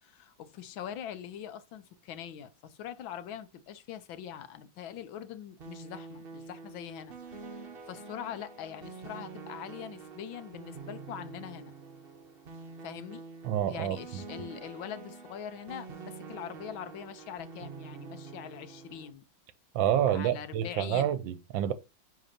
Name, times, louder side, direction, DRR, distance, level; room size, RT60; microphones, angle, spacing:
voice 1, 0.0-7.1 7.4-11.7 12.8-13.2 13.7-19.2 20.1-21.2, left 9 dB, 80° left, 1.6 m, -43 dB
sound 1, 5.6-19.1, right 4 dB, 45° right, 0.8 m, -46 dB
voice 2, 13.4-14.2 19.7-21.7, right 10 dB, 80° right, 1.3 m, -28 dB
10.0 x 3.9 x 2.8 m
omnidirectional pair, 2.1 m